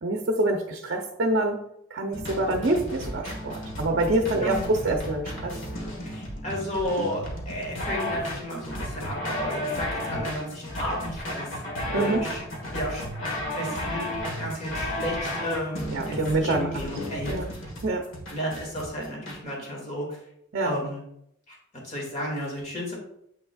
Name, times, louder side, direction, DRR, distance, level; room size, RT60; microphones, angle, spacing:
voice 1, 0.0-1.6 1.9-5.5 11.9-12.2 15.9-16.7 17.3-17.5 17.8-18.0 20.5-20.7, right 2 dB, 55° right, 3 dB, 0.7 m, -26 dB
sound 1, 2.1-19.4, left 1 dB, 70° left, 1.4 m, -33 dB
voice 2, 4.4-5.0 6.0-11.7 11.9-12.4 12.7-13.1 13.6-17.5 18.3-20.2 20.6-21.0 21.5-21.6 21.8-22.9, equal, 35° left, -2 dB, 2.1 m, -33 dB
7.7 x 6.1 x 2.3 m, 0.75 s
head